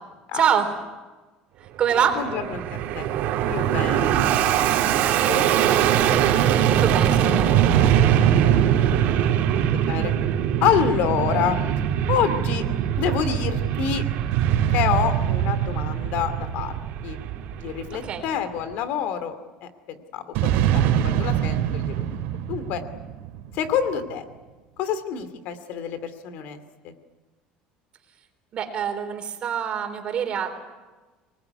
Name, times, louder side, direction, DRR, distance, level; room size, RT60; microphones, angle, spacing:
voice 1, 0.3-0.7 1.6-2.2 5.0-5.8 6.7-7.6 17.9-18.2 28.5-30.7, right 8 dB, 35° right, 5 dB, 3.7 m, -26 dB
Fixed-wing aircraft airplane, 1.8-18.4, right 10 dB, 60° right, 2.8 m, -23 dB
voice 2, 2.2-2.6 2.9-3.1 3.4-4.1 5.3-5.4 8.6-10.1 10.6-11.6 12.1-12.6 13.0-14.0 14.7-16.7 17.0-17.2 17.6-19.4 19.6-19.7 20.1-22.2 22.5-22.8 23.5-24.2 24.8-26.9, left 8 dB, 65° left, 11 dB, 2.4 m, -27 dB
sound 1, 7.5-11.2 14.3-18.0 20.3-23.8, right 10 dB, 75° right, 2.9 m, -24 dB
26.0 x 19.5 x 9.7 m, 1.2 s
cardioid pair, 155°, 3 cm